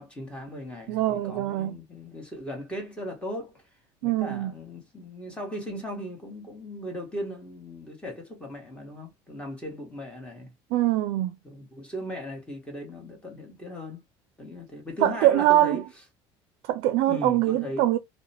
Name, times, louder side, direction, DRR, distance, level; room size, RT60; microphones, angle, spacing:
voice 1, 0.0-3.6 4.0-10.5 11.4-14.0 14.4-15.8 17.0-17.9, equal, 10° left, 1.3 m, -37 dB
voice 2, 0.9-1.8 4.0-4.5 10.7-11.4 15.0-15.8 16.6-18.0, right 14 dB, 75° right, 0.4 m, -23 dB
2.8 x 2.1 x 2.8 m
supercardioid pair, 110°, 11 cm